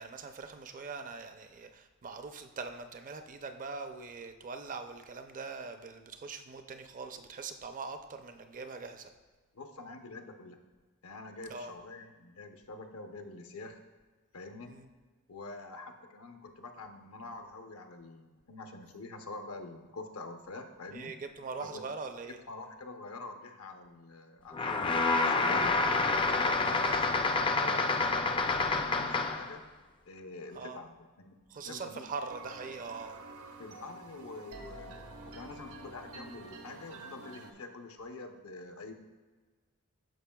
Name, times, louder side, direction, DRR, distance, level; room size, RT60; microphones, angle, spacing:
voice 1, 0.0-9.1 11.5-11.7 14.7-14.9 20.9-22.4 26.4-27.0 30.5-30.8 31.5-33.2, right 4 dB, 40° right, 8 dB, 0.5 m, -42 dB
voice 2, 9.5-10.6 11.0-13.8 14.3-14.8 15.3-21.1 21.6-21.8 22.5-25.7 26.2-29.6 30.1-31.4 31.6-32.0 33.6-35.0 35.3-38.9, left 3 dB, 75° left, 5 dB, 0.7 m, -46 dB
sound 1, 24.5-29.5, left 3 dB, 25° left, 0.4 m, -28 dB
sound 2, 32.3-37.5, right 2 dB, 75° right, 0.9 m, -48 dB
12.5 x 5.1 x 2.3 m, 1.4 s
head